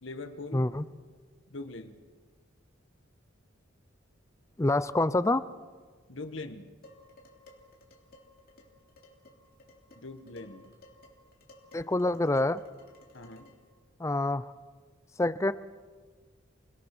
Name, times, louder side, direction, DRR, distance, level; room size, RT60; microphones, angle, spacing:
voice 1, 0.0-0.7 1.5-1.9 6.1-6.7 9.9-10.7 13.1-13.5, left 2 dB, 70° left, 7 dB, 1.6 m, -42 dB
voice 2, 0.5-0.8 4.6-5.5 11.7-12.6 14.0-14.5 15.2-15.5, left 2 dB, 15° left, 15 dB, 0.5 m, -26 dB
Dishes pots and pans, 6.8-13.7, left 1 dB, 50° left, 3.4 m, -57 dB
28.0 x 18.0 x 6.1 m, 1.5 s
head